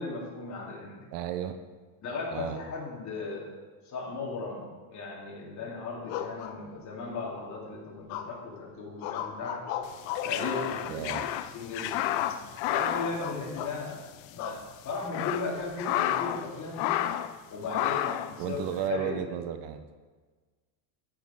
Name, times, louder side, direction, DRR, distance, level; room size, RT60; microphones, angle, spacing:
voice 1, 0.0-1.1 2.0-3.5 3.9-4.6 4.9-9.6 10.2-11.2 11.5-12.1 12.7-14.0 14.3-17.0 17.5-19.2, left 3 dB, 35° left, -4 dB, 3.3 m, -36 dB
voice 2, 1.1-1.6 2.3-2.6 10.9-11.2 18.4-19.9, right 10 dB, 60° right, 9 dB, 0.9 m, -33 dB
sound 1, 6.1-7.1 8.1-8.6 9.0-10.4 11.1-11.7 12.1-12.4 12.7-12.9 13.2-13.8 14.4-14.6 15.2-16.0, left 9 dB, 90° left, 1.1 m, -37 dB
sound 2, 9.9-14.0 14.3-14.4 14.9-16.5 16.7-17.3 17.7-18.3, left 12 dB, 65° left, 0.7 m, -31 dB
13.5 x 6.6 x 4.7 m, 1.4 s
cardioid pair, 145°, 49 cm